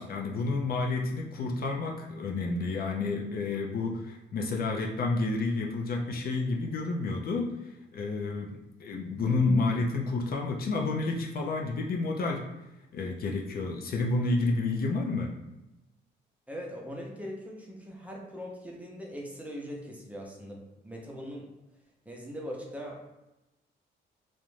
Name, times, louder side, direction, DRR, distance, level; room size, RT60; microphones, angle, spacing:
voice 1, 0.0-12.5 12.9-15.3, left 3 dB, 50° left, 0 dB, 0.4 m, -30 dB
voice 2, 16.5-21.5 22.1-23.0, equal, 5° right, -2 dB, 0.6 m, -41 dB
2.4 x 2.1 x 3.1 m, 0.95 s
cardioid pair, 90°, 20 cm